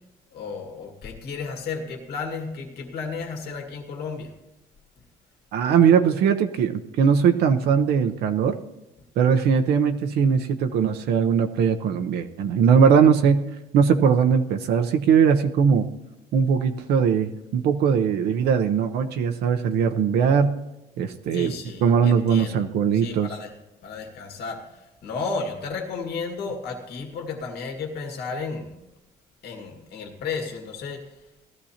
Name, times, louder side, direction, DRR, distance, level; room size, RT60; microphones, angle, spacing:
voice 1, 0.3-4.3 21.3-23.5 23.8-28.8 29.4-31.2, left 4 dB, 70° left, 2 dB, 2.1 m, -33 dB
voice 2, 5.5-8.6 9.2-13.4 13.7-15.9 16.3-20.6 21.0-21.5 21.8-23.3, right 7 dB, 75° right, 6 dB, 0.8 m, -20 dB
18.5 x 13.5 x 2.9 m, 0.96 s
cardioid pair, 110°, 17 cm